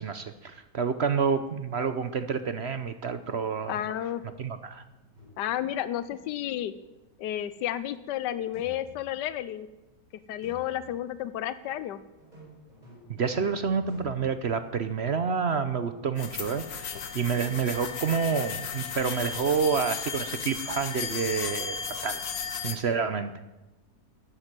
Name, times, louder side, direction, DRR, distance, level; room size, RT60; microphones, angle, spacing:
voice 1, 0.0-3.7 4.4-4.8 13.2-22.2 22.6-23.3, right 6 dB, 50° right, 10 dB, 0.8 m, -28 dB
voice 2, 3.7-4.2 5.4-6.7 7.2-9.7 10.3-12.0, left 12 dB, 85° left, 14 dB, 1.3 m, -31 dB
sound 1, 5.1-5.8 8.5-9.4 10.4-11.1 12.2-15.1, left 2 dB, 25° right, 4.5 m, -51 dB
sound 2, 16.2-22.8, left 6 dB, 65° left, 1.6 m, -35 dB
13.0 x 9.8 x 8.9 m, 1.0 s
omnidirectional pair, 1.8 m